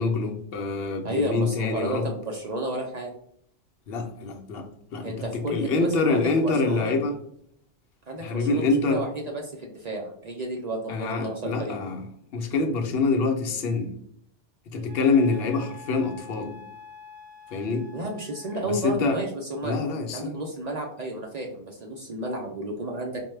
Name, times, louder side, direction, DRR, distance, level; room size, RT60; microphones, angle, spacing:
voice 1, 0.0-2.1 3.9-4.7 4.9-7.1 8.2-9.0 10.9-12.0 12.3-13.9 14.7-16.6 17.5-17.9 18.5-19.2 19.6-20.3, left 3 dB, 60° left, 4 dB, 0.8 m, -25 dB
voice 2, 1.0-3.1 5.0-6.9 8.1-11.8 17.9-19.8 20.1-23.2, right 1 dB, 60° right, 1 dB, 0.4 m, -32 dB
Wind instrument woodwind instrument, 14.9-18.7, left 5 dB, 85° right, 1.0 m, -47 dB
4.4 x 2.2 x 3.1 m, 0.67 s
omnidirectional pair, 1.3 m